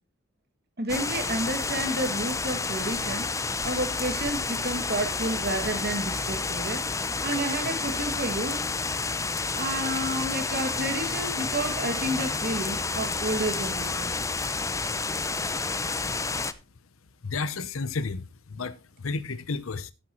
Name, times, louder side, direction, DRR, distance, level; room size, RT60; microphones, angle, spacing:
voice 1, 0.8-3.3 3.6-6.9 7.2-8.6 9.5-14.1, right 1 dB, 50° right, 2.3 m, -30 dB
sound 1, 0.9-16.5, left 4 dB, 15° left, 0.6 m, -30 dB
voice 2, 17.2-19.9, left 4 dB, 90° left, 0.8 m, -32 dB
13.5 x 9.9 x 3.1 m
head